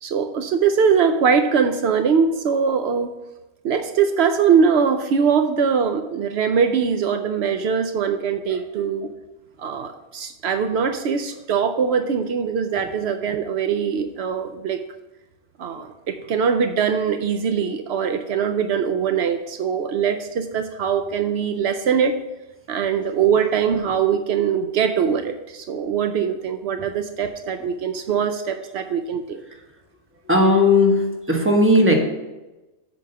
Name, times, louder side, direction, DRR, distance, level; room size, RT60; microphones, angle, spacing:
voice 1, 0.0-3.1 3.6-9.1 9.6-14.8 15.6-22.2 22.7-29.4, right 6 dB, 75° right, 8 dB, 0.8 m, -22 dB
voice 2, 30.2-31.9, left 1 dB, 10° right, 1 dB, 1.3 m, -16 dB
8.2 x 4.2 x 6.8 m, 1.1 s
omnidirectional pair, 1.1 m